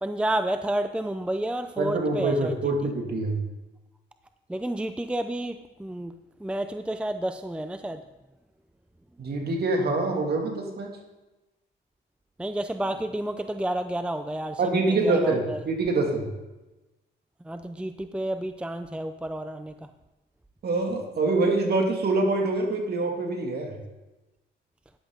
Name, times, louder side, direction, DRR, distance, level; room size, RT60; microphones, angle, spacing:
voice 1, 0.0-2.5 4.5-8.0 12.4-15.6 17.4-19.9, right 1 dB, 5° right, 9 dB, 0.5 m, -30 dB
voice 2, 1.8-3.4 9.2-10.9 14.6-16.3 20.6-23.8, right 2 dB, 55° right, 2 dB, 2.6 m, -25 dB
13.0 x 10.0 x 3.9 m, 1.0 s
cardioid pair, 90°, 20 cm